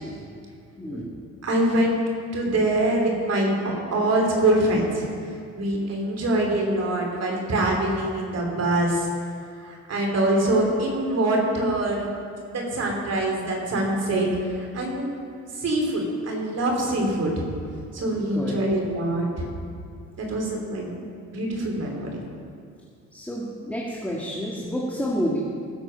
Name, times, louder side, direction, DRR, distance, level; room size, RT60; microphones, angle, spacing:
voice 1, 0.8-1.1 18.3-18.6 23.1-25.4, equal, 5° left, -5 dB, 2.0 m, -29 dB
voice 2, 1.4-2.0 2.3-3.5 3.9-5.1 5.5-9.1 9.6-12.1 12.5-15.1 15.6-17.4 17.9-19.5 20.2-20.9 21.3-22.1, right 1 dB, 55° right, 0 dB, 3.3 m, -24 dB
17.5 x 8.0 x 5.3 m, 2.3 s
cardioid pair, 90°, 30 cm